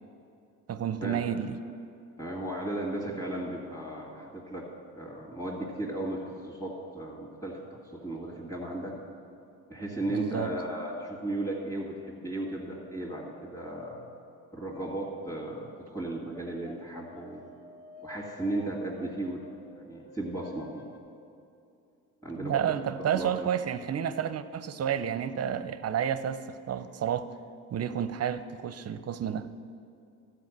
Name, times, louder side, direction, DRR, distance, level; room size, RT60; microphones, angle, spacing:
voice 1, 0.7-1.6 10.1-10.5 22.3-27.3 27.7-29.5, right 9 dB, 40° right, 13 dB, 0.6 m, -30 dB
voice 2, 2.2-4.7 4.9-7.6 7.9-9.0 9.7-14.1 14.5-17.5 18.0-19.4 19.7-20.8 22.2-22.6 23.1-23.5, right 1 dB, 5° left, -6 dB, 2.2 m, -35 dB
sound 1, 14.7-15.7 16.6-21.0, left 3 dB, 75° left, 1.1 m, -51 dB
13.0 x 5.0 x 7.3 m, 2.6 s
hypercardioid pair, 60°, 41 cm